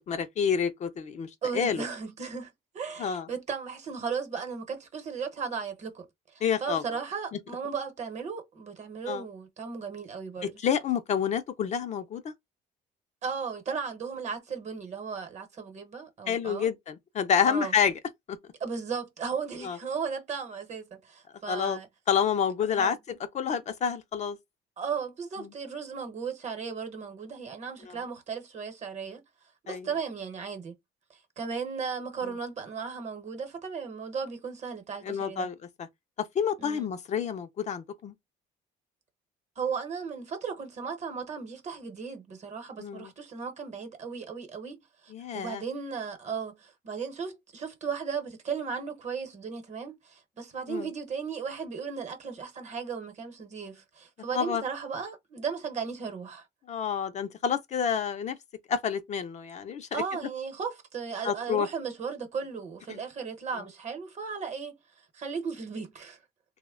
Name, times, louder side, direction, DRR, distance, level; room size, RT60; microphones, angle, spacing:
voice 1, 0.1-1.8 3.0-3.3 6.4-6.8 9.1-9.2 10.4-12.3 16.3-18.0 18.3-18.4 19.6-19.8 21.5-21.8 22.1-24.4 25.4-25.5 27.9-28.0 29.7-29.9 35.0-35.9 36.2-38.1 42.8-43.1 45.1-45.6 50.7-50.9 54.3-54.6 56.7-58.4 58.7-59.9 61.2-61.7 62.9-63.0, left 7 dB, 45° left, 0.5 m, -29 dB
voice 2, 1.4-6.1 6.3-10.5 13.2-16.7 17.4-17.7 18.6-21.9 22.8-23.0 24.8-29.2 29.7-30.8 31.1-35.5 36.6-36.9 39.6-56.5 59.9-64.8 65.1-66.2, right 6 dB, 45° right, 0.9 m, -36 dB
3.0 x 2.1 x 3.5 m
cardioid pair, 110°, 17 cm